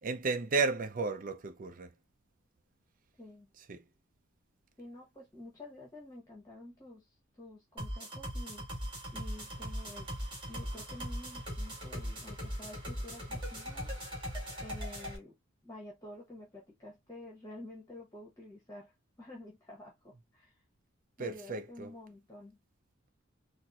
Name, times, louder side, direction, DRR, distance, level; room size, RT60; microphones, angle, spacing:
voice 1, 0.0-1.9 3.7-3.8 21.2-22.0, right 4 dB, 45° right, 0.5 m, -33 dB
voice 2, 3.2-3.5 4.8-8.7 9.1-10.1 10.5-13.9 14.6-15.4 15.6-18.9 19.2-20.5 21.2-22.6, left 1 dB, 15° left, 1.1 m, -50 dB
sound 1, 7.8-15.2, equal, 25° right, 1.6 m, -39 dB
4.3 x 2.1 x 2.4 m
head